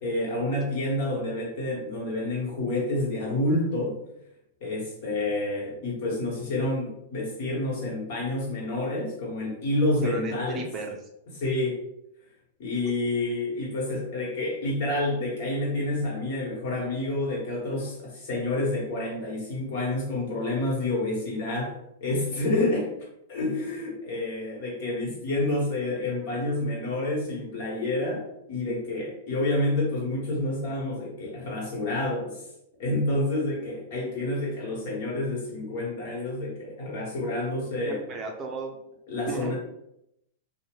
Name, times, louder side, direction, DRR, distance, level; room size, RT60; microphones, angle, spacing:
voice 1, 0.0-4.0 4.6-10.6 11.3-11.8 12.6-21.7 22.0-22.9 23.3-32.4 32.8-38.0 39.1-39.6, left 2 dB, 60° left, -3 dB, 1.3 m, -28 dB
voice 2, 10.0-11.0 37.8-38.8 39.3-39.6, right 3 dB, 30° right, 3 dB, 0.5 m, -34 dB
2.7 x 2.1 x 3.0 m, 0.80 s
hypercardioid pair, 115°, 0 cm